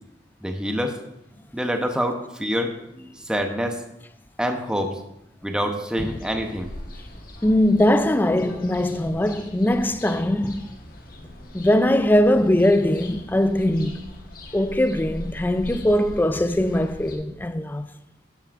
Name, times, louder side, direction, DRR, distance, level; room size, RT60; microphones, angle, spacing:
voice 1, 0.4-1.0 1.5-3.8 4.4-5.0 5.4-6.7, equal, 5° right, 0.7 m, -26 dB
sound 1, 6.0-17.2, left 1 dB, 50° left, 1.3 m, -41 dB
voice 2, 7.4-10.7 11.5-14.0 14.5-17.9, left 1 dB, 10° left, 0.3 m, -21 dB
13.0 x 9.2 x 2.5 m
head